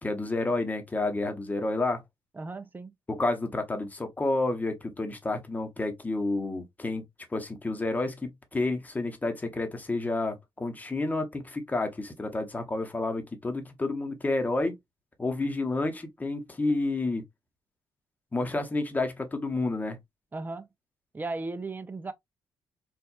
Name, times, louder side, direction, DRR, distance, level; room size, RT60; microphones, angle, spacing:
voice 1, 0.0-2.0 3.1-7.0 7.3-14.8 15.2-17.2 18.3-20.0, left 2 dB, 20° left, 1.0 m, -30 dB
voice 2, 2.4-2.9 20.3-20.7 21.1-22.1, right 3 dB, 20° right, 0.6 m, -36 dB
4.5 x 2.5 x 2.5 m
cardioid pair, 100°, 9 cm